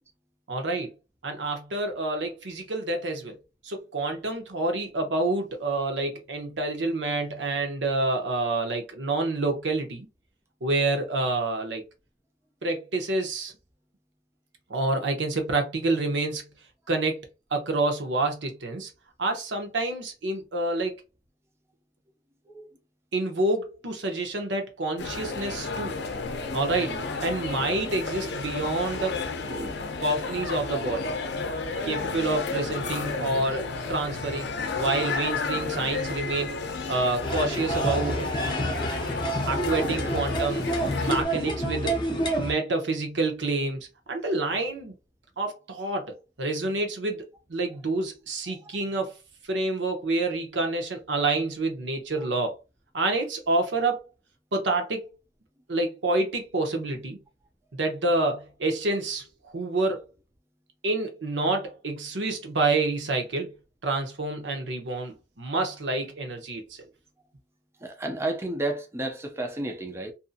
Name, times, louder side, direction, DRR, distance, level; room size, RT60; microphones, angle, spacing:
voice 1, 0.5-0.9 1.2-3.4 3.6-10.1 10.6-11.8 12.6-13.5 14.7-16.4 16.9-17.2 17.5-18.9 19.2-21.0 23.1-25.9 26.5-29.1 30.0-31.1 31.8-38.3 39.5-40.7 41.0-44.9 45.4-47.2 47.5-49.2 49.5-52.5 52.9-54.0 54.5-55.2 55.7-57.2 57.8-60.0 60.8-63.5 63.8-66.8, right 2 dB, 75° right, 0.8 m, -28 dB
sound 1, 25.0-41.2, left 4 dB, 65° left, 0.5 m, -32 dB
voice 2, 29.5-30.0 39.9-40.1 67.8-70.1, right 2 dB, 15° right, 0.4 m, -32 dB
sound 2, 37.2-42.5, right 1 dB, 25° left, 0.7 m, -28 dB
2.6 x 2.6 x 2.4 m
head